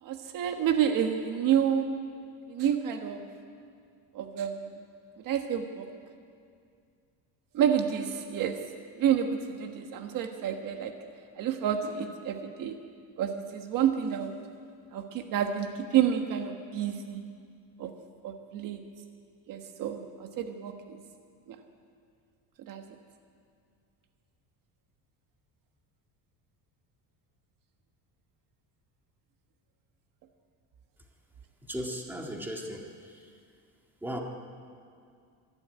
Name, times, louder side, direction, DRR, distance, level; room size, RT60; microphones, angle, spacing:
voice 1, 0.0-2.0 2.5-3.3 4.1-4.7 5.2-5.9 7.5-8.7 9.0-11.0 11.4-12.8 13.2-14.4 14.9-17.2 17.8-17.9 18.2-18.8 19.5-21.0 21.5-21.6 22.6-22.8, right 9 dB, 50° right, 6 dB, 1.4 m, -29 dB
voice 2, 31.6-33.4 34.0-34.2, equal, 5° right, 1 dB, 1.9 m, -37 dB
25.0 x 11.5 x 9.4 m, 2.3 s
cardioid pair, 165°, 40 cm